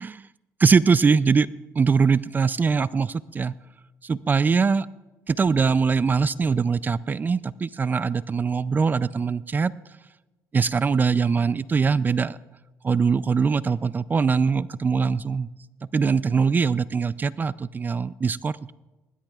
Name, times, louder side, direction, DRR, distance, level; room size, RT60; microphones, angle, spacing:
voice 1, 0.6-1.5 1.8-3.5 4.0-4.9 5.3-9.7 10.5-12.4 12.8-15.5 15.9-18.7, right 5 dB, 30° right, 17 dB, 0.4 m, -22 dB
20.5 x 19.0 x 2.4 m, 1.1 s
cardioid pair, 90°, 6 cm